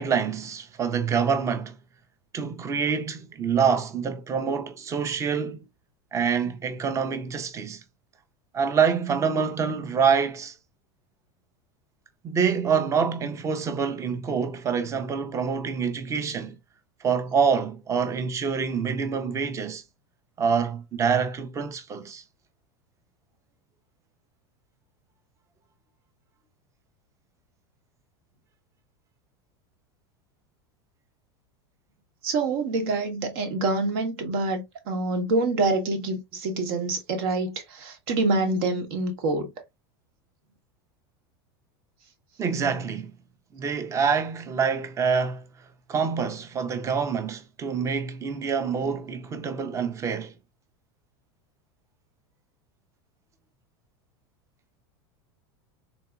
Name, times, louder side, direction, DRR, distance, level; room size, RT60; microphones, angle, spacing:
voice 1, 0.0-1.8 2.3-5.6 6.1-7.8 8.5-10.5 12.2-16.6 17.0-19.8 20.4-22.2 42.4-43.1 43.5-45.4 45.9-50.3, right 6 dB, 25° right, 0.6 m, -26 dB
voice 2, 32.2-39.5, right 2 dB, 65° right, 1.2 m, -26 dB
3.8 x 2.7 x 2.3 m
supercardioid pair, 125°, 13 cm